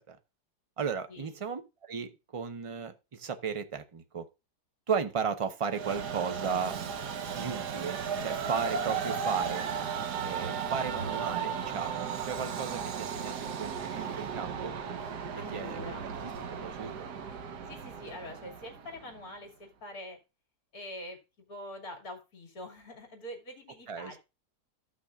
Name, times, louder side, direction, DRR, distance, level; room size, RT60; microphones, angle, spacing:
voice 1, 0.8-4.2 4.9-6.8 7.3-9.7 10.2-14.8 15.5-15.8 16.2-16.3 16.6-17.1 23.9-24.2, right 6 dB, 40° right, 0.4 m, -35 dB
Train, 5.7-19.2, right 6 dB, 70° right, 1.5 m, -35 dB
voice 2, 15.3-16.1 17.7-20.2 20.7-24.2, left 1 dB, 60° left, 2.8 m, -45 dB
14.5 x 6.1 x 2.4 m
omnidirectional pair, 1.8 m